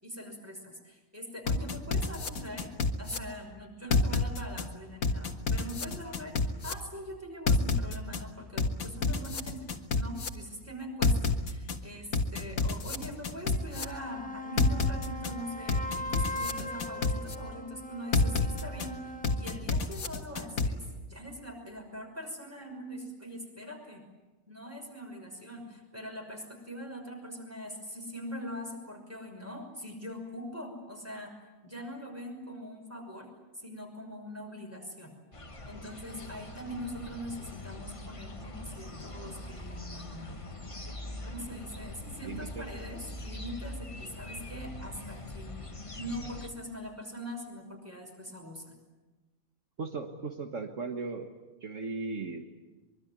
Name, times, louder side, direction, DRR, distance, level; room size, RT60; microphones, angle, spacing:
voice 1, 0.0-2.7 3.0-19.0 19.4-20.8 21.1-24.0 24.5-31.3 31.6-33.3 33.5-35.1 35.6-40.4 41.3-45.7 46.0-48.8, equal, 10° right, 2 dB, 5.8 m, -42 dB
sound 1, 1.5-3.2 3.9-4.6 5.0-6.7 7.5-8.2 8.6-10.3 11.0-11.8 12.1-13.8 14.6-15.3 15.7-17.3 18.1-18.9 19.2-20.7, left 4 dB, 75° left, 2.0 m, -28 dB
sound 2, 13.5-19.7, left 2 dB, 5° left, 1.2 m, -40 dB
sound 3, 35.3-46.5, left 1 dB, 25° left, 1.5 m, -43 dB
voice 2, 42.2-42.7 49.8-51.3 51.6-52.4, right 4 dB, 60° right, 4 dB, 1.8 m, -37 dB
24.0 x 23.5 x 9.6 m, 1.2 s
omnidirectional pair, 1.5 m